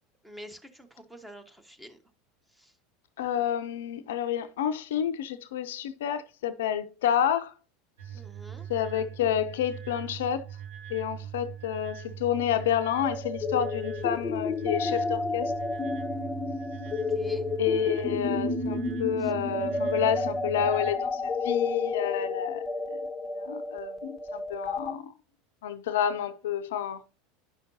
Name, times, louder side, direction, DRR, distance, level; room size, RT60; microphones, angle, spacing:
voice 1, 0.2-2.0 2.5-2.8 8.1-8.7 17.1-17.5 19.2-19.3, equal, 5° right, 1.2 m, -47 dB
voice 2, 3.2-7.5 8.7-10.4 10.9-15.5 17.6-23.1 23.4-25.1 25.6-27.0, left 9 dB, 70° left, 0.5 m, -29 dB
sound 1, 8.0-20.9, right 10 dB, 70° right, 2.1 m, -41 dB
sound 2, 13.0-24.9, left 3 dB, 20° left, 0.8 m, -31 dB
9.9 x 5.7 x 2.7 m
hypercardioid pair, 80°, 0 cm